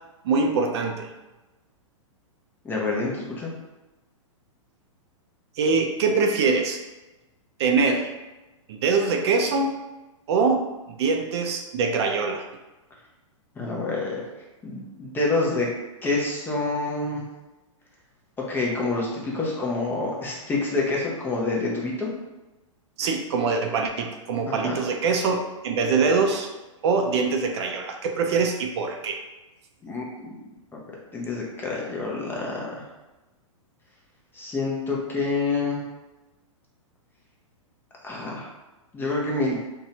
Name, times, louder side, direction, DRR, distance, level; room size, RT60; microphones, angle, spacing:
voice 1, 0.2-1.1 5.6-6.8 7.6-8.1 8.7-9.7 10.3-12.4 23.0-26.5 26.8-29.2, right 4 dB, 55° right, 4 dB, 0.4 m, -23 dB
voice 2, 2.6-3.5 13.6-14.2 14.6-15.7 16.0-17.3 18.4-22.1 24.5-24.8 29.8-30.3 31.1-32.8 34.3-35.8 38.0-38.5 38.9-39.6, left 3 dB, 10° left, -3 dB, 0.5 m, -27 dB
2.7 x 2.2 x 2.7 m, 1.1 s
hypercardioid pair, 125°, 17 cm